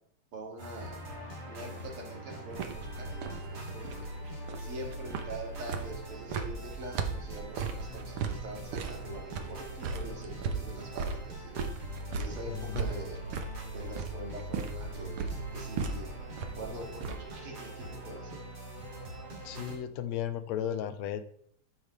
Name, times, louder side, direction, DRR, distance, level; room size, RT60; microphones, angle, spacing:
voice 1, 0.3-1.0 1.5-4.1 4.6-11.6 12.1-13.2 13.7-16.1 16.5-18.4, right 2 dB, 50° right, 0 dB, 2.5 m, -44 dB
sound 1, 0.6-19.8, right 1 dB, 35° right, 2.7 m, -42 dB
sound 2, 2.5-17.4, right 5 dB, 75° right, 1.3 m, -38 dB
voice 2, 12.5-12.9 19.4-21.2, left 10 dB, 75° left, 10 dB, 1.7 m, -35 dB
14.0 x 5.1 x 3.1 m, 0.64 s
omnidirectional pair, 3.4 m